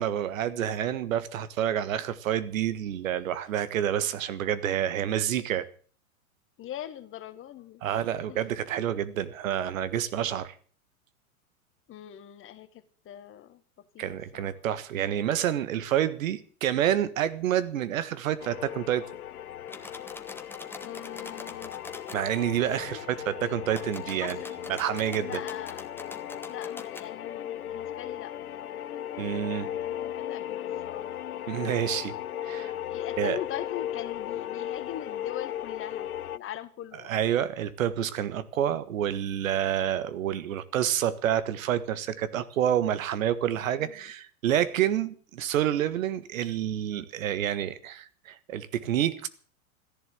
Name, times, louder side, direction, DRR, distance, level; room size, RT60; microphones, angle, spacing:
voice 1, 0.0-5.7 7.8-10.6 14.0-19.1 22.1-24.4 24.7-25.4 29.2-29.7 31.5-32.1 32.4-32.7 33.2-33.4 37.0-49.3, right 10 dB, 65° right, 1.6 m, -28 dB
voice 2, 6.6-7.8 8.3-8.4 11.9-14.5 20.8-21.7 22.9-23.0 24.0-24.4 25.2-25.9 26.5-28.4 29.3-31.1 32.9-37.4 43.8-44.1, left 12 dB, 30° left, 1.6 m, -41 dB
sound 1, 18.4-36.4, left 11 dB, 85° left, 0.7 m, -36 dB
sound 2, 19.7-22.2 23.7-27.1, left 2 dB, 5° left, 1.5 m, -44 dB
14.0 x 11.0 x 8.0 m
hypercardioid pair, 100°, 43 cm